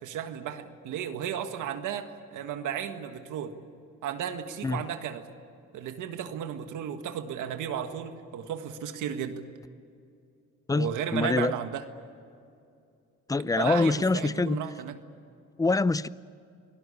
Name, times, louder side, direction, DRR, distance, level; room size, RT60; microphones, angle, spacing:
voice 1, 0.0-3.6 4.0-5.3 5.7-9.4 10.7-11.8 13.6-15.0, right 9 dB, 85° right, 1.7 m, -34 dB
voice 2, 10.7-11.5 13.3-14.6 15.6-16.1, left 3 dB, 10° left, 0.6 m, -25 dB
28.5 x 18.0 x 8.5 m
cardioid pair, 90°, 30 cm